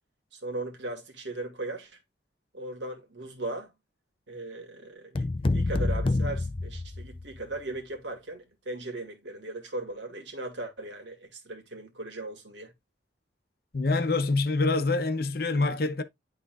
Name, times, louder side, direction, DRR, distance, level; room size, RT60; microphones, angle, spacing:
voice 1, 0.3-2.0 2.5-3.7 4.3-5.3 5.5-12.7, right 2 dB, 80° right, 1.9 m, -38 dB
sound 1, 5.1-7.4, left 2 dB, 30° left, 0.4 m, -28 dB
voice 2, 13.7-16.0, left 3 dB, 55° left, 0.7 m, -26 dB
11.0 x 3.8 x 2.4 m
head